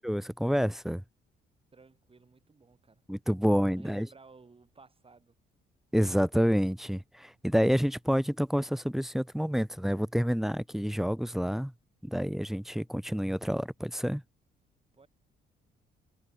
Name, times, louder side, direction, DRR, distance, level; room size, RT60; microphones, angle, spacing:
voice 1, 0.0-1.0 3.1-4.1 5.9-11.7 12.0-14.2, equal, ahead, 0.8 m, -28 dB
voice 2, 1.7-3.0 3.4-5.4 14.9-15.1, right 4 dB, 30° right, 5.2 m, -56 dB
cardioid pair, 90°, 20 cm